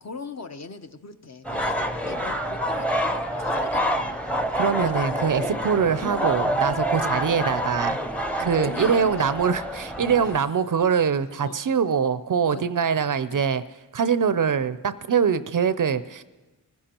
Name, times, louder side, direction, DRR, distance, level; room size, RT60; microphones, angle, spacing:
voice 1, 0.0-3.1 3.4-4.5 4.8-6.0 7.0-7.3 8.3-9.3 9.6-9.7 10.2-10.3 11.4-11.6 12.4-12.6 13.3-13.4, left 4 dB, 40° left, 7 dB, 0.7 m, -40 dB
sound 1, 1.4-10.4, equal, 5° left, 0.7 m, -27 dB
voice 2, 4.5-8.0 8.4-13.6 13.9-16.2, right 6 dB, 50° right, 13 dB, 0.5 m, -23 dB
24.0 x 15.5 x 2.9 m, 1.2 s
wide cardioid pair, 85°, 43 cm